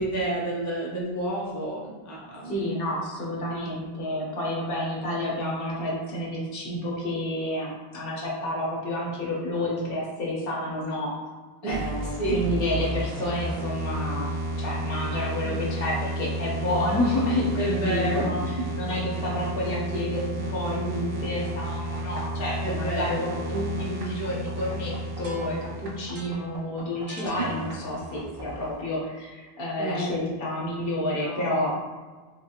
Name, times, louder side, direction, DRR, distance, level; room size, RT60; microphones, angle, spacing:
voice 1, 0.0-2.7 3.5-3.7 11.6-11.9 12.2-12.5 15.4-15.6 17.6-18.7 22.6-23.3 27.4-27.5 29.8-30.2 31.2-31.7, right 1 dB, 20° left, -5 dB, 0.6 m, -30 dB
voice 2, 2.4-11.2 11.7-31.8, left 1 dB, 65° left, -3 dB, 0.9 m, -30 dB
sound 1, 11.7-28.8, right 1 dB, 70° right, 0.9 m, -32 dB
3.6 x 2.4 x 2.7 m, 1.4 s
omnidirectional pair, 1.1 m